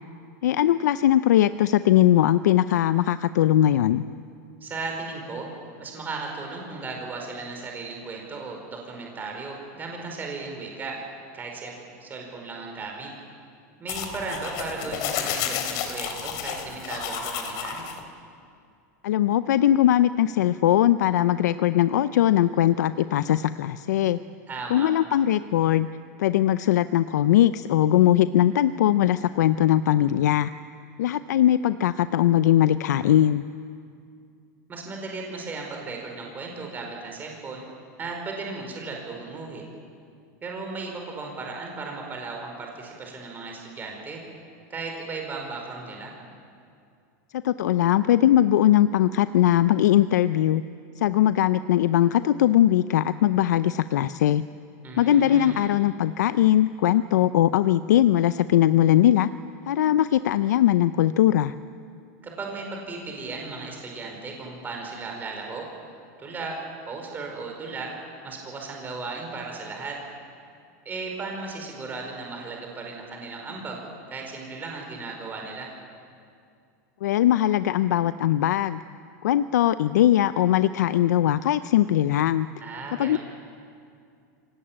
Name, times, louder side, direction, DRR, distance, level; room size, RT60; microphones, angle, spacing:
voice 1, 0.4-4.0 19.0-24.2 24.7-25.9 26.2-30.5 31.0-33.4 47.3-50.6 51.0-54.4 55.0-59.3 59.7-61.5 77.0-78.8 79.2-82.5 83.0-83.2, left 12 dB, 90° left, 13 dB, 0.6 m, -20 dB
voice 2, 4.6-5.5 5.8-11.0 11.3-11.7 12.0-13.1 13.8-17.8 24.5-24.9 34.7-37.6 38.0-39.6 40.4-44.2 44.7-46.1 54.8-55.7 62.2-65.6 66.2-66.6 66.9-67.9 68.2-70.0 70.8-73.8 74.1-75.7 82.6-83.2, right 3 dB, 20° right, 1 dB, 4.9 m, -36 dB
sound 1, 13.9-18.0, left 8 dB, 50° left, 3.2 m, -31 dB
25.0 x 18.0 x 8.8 m, 2.4 s
supercardioid pair, 140°, 9 cm